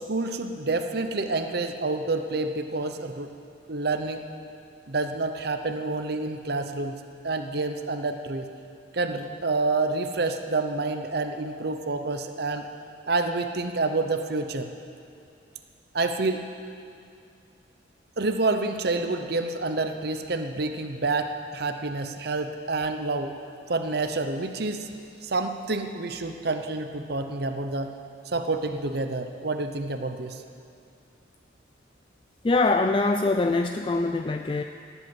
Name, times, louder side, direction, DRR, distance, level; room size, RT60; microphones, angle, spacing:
voice 1, 0.0-3.3 3.7-4.2 4.9-7.0 7.2-8.5 8.9-12.7 13.1-14.7 15.9-16.4 18.2-23.3 23.7-24.9 25.2-27.9 28.3-30.4, right 3 dB, 55° right, 6 dB, 0.8 m, -28 dB
voice 2, 32.4-34.6, left 3 dB, 25° left, 6 dB, 0.4 m, -23 dB
17.0 x 8.1 x 8.9 m, 2.5 s
head